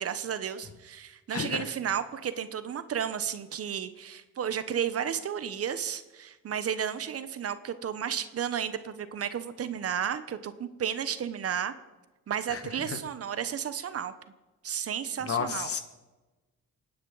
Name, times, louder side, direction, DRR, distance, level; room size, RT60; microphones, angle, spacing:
voice 1, 0.0-11.7 12.3-14.1 14.6-15.7, right 8 dB, 50° right, 12 dB, 0.9 m, -33 dB
voice 2, 15.2-15.8, left 6 dB, 50° left, 8 dB, 1.6 m, -31 dB
26.5 x 9.5 x 4.0 m, 1.2 s
cardioid pair, 90°, 30 cm